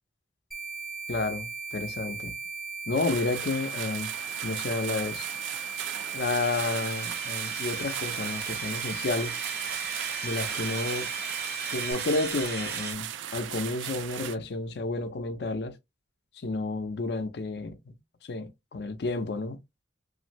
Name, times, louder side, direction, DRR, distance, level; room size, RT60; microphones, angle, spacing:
sound 1, 0.5-11.9, right 5 dB, ahead, 0.3 m, -38 dB
voice 1, 1.1-2.3 2.9-4.1 4.4-5.3 6.1-9.3 10.2-11.1 11.7-15.8 16.4-18.0 18.2-19.6, left 3 dB, 60° left, 0.5 m, -31 dB
sound 2, 2.9-14.4, right 11 dB, 85° right, 0.3 m, -38 dB
sound 3, 6.2-12.9, right 5 dB, 60° right, 0.8 m, -37 dB
2.6 x 2.5 x 2.9 m
head